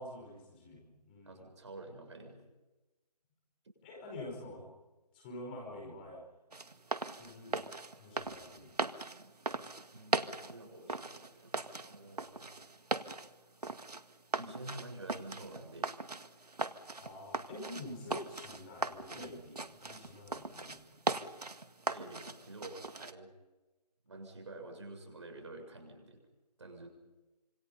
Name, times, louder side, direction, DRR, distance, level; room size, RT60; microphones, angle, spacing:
voice 1, 0.0-1.4 3.8-4.7 5.1-6.2 7.2-7.6 8.0-8.7 17.0-20.8, left 1 dB, 15° left, -1 dB, 5.1 m, -47 dB
voice 2, 1.2-2.4 9.9-11.5 11.8-12.6 14.3-16.0 21.8-23.3 24.0-26.2 26.6-26.9, right 2 dB, 45° right, 4 dB, 7.0 m, -49 dB
sound 1, 6.5-23.1, right 3 dB, 70° right, 1.9 m, -39 dB
27.0 x 25.5 x 5.6 m, 1.1 s
figure-of-eight pair, 160°, 21 cm